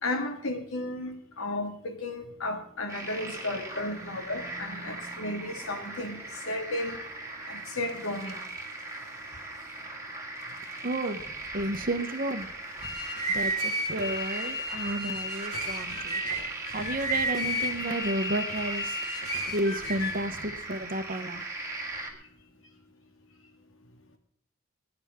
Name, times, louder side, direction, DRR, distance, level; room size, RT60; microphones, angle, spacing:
voice 1, 0.0-7.0 7.5-8.4, left 2 dB, 70° left, 5 dB, 2.1 m, -34 dB
sound 1, 2.9-22.1, right 2 dB, 15° right, 2.2 m, -39 dB
voice 2, 10.8-12.5 13.3-16.2 16.7-21.4, right 1 dB, 40° right, 8 dB, 1.2 m, -32 dB
sound 2, 12.6-20.3, equal, 85° left, 7.2 m, -33 dB
21.5 x 10.0 x 3.7 m, 0.64 s
head